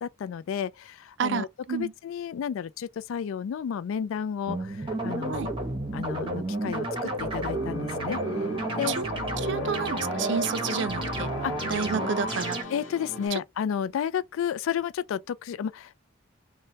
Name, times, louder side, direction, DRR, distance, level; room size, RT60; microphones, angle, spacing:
voice 1, 0.0-5.5 5.9-8.2 8.8-9.0 11.4-11.7 12.7-16.0, left 8 dB, 85° left, 0.3 m, -32 dB
voice 2, 1.2-1.9 5.3-5.5 9.0-9.1 9.4-11.3 11.7-12.6, right 6 dB, 60° right, 0.4 m, -30 dB
sound 1, 4.5-12.6, right 2 dB, 25° right, 0.7 m, -31 dB
sound 2, 6.9-13.3, left 1 dB, 65° left, 0.7 m, -37 dB
3.1 x 2.1 x 2.7 m
head